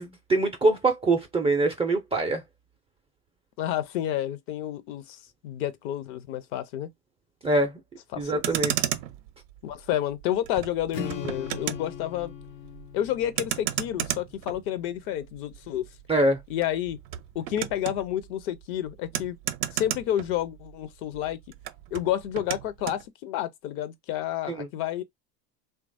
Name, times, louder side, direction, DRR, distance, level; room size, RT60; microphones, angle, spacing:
voice 1, 0.0-2.4 7.4-7.8 8.2-8.7 16.1-16.4 24.5-24.7, right 2 dB, 15° right, 0.3 m, -24 dB
voice 2, 3.6-6.9 8.1-8.4 9.6-12.3 12.9-15.9 16.5-17.0 17.3-19.4 19.7-21.4 21.9-25.0, left 11 dB, 60° left, 0.7 m, -30 dB
Motor vehicle (road), 8.2-20.9 21.1-23.0, right 13 dB, 60° right, 0.6 m, -34 dB
Strum, 10.9-15.0, left 7 dB, 90° left, 0.8 m, -40 dB
2.9 x 2.3 x 2.5 m
hypercardioid pair, 80°, 49 cm